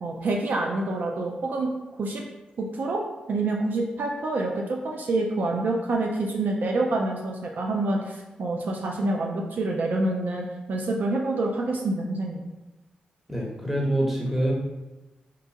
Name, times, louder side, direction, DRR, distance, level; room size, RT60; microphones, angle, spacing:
voice 1, 0.0-1.7 2.0-2.2 2.6-3.0 3.3-12.4, right 2 dB, 65° right, 0 dB, 0.3 m, -27 dB
voice 2, 13.3-14.5, right 1 dB, 10° right, -2 dB, 0.9 m, -25 dB
2.8 x 2.2 x 2.7 m, 1.1 s
supercardioid pair, 40°, 3 cm